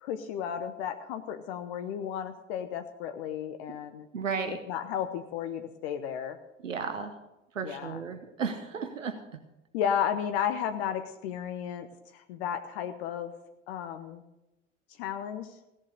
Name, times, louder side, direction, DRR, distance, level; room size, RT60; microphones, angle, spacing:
voice 1, 0.0-4.1 4.7-6.4 7.6-8.0 9.7-11.9 12.1-13.3 13.7-14.2 15.0-15.6, left 9 dB, 55° left, 9 dB, 1.0 m, -33 dB
voice 2, 4.1-4.6 6.6-7.1 7.5-9.2, right 5 dB, 80° right, 7 dB, 1.0 m, -34 dB
16.5 x 7.4 x 6.6 m, 0.94 s
figure-of-eight pair, 65°, 38 cm